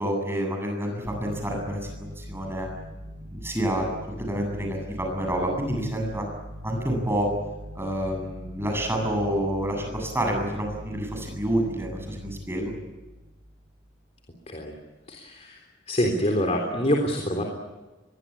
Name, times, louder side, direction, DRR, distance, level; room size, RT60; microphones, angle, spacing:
voice 1, 0.0-2.7 3.3-6.3 6.6-7.3 7.7-12.7, right 1 dB, 15° right, 2 dB, 7.9 m, -28 dB
sound 1, 1.0-14.2, equal, 55° right, 4.9 m, -41 dB
voice 2, 15.1-15.6 15.9-17.4, equal, 35° left, 2 dB, 3.7 m, -25 dB
24.5 x 22.5 x 8.6 m, 1.2 s
head